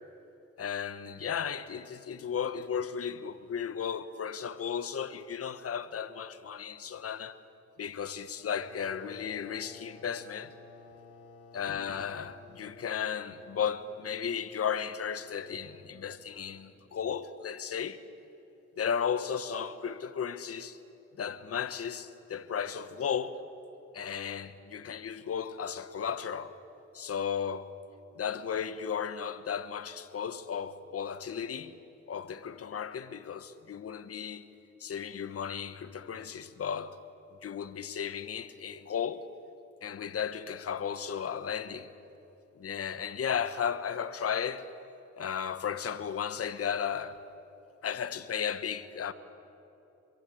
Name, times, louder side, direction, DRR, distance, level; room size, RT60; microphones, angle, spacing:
voice 1, 0.6-7.4 7.8-10.5 11.5-18.0 18.8-20.8 21.2-23.4 23.9-26.5 26.9-27.7 28.1-31.7 32.1-34.4 34.8-37.0 37.4-39.3 39.8-41.9 42.5-44.7 45.2-47.2 47.8-49.1, left 7 dB, 50° left, 1.4 m, -35 dB
sound 1, 8.4-16.8, left 3 dB, 80° left, 5.4 m, -54 dB
26.5 x 23.0 x 8.0 m
cardioid pair, 90°, 30 cm